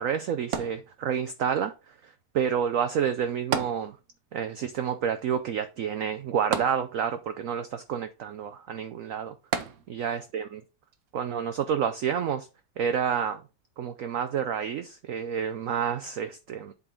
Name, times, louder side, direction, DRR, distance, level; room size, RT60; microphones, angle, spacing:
voice 1, 0.0-4.0 4.3-9.3 9.9-10.6 11.1-12.5 12.8-13.4 13.8-16.7, right 8 dB, 85° right, 0.7 m, -29 dB
sound 1, 0.5-1.4 3.5-4.4 4.7-4.8 6.5-7.4 9.5-10.2 10.9-11.0, right 7 dB, 60° right, 1.0 m, -32 dB
7.7 x 3.8 x 4.4 m
omnidirectional pair, 2.0 m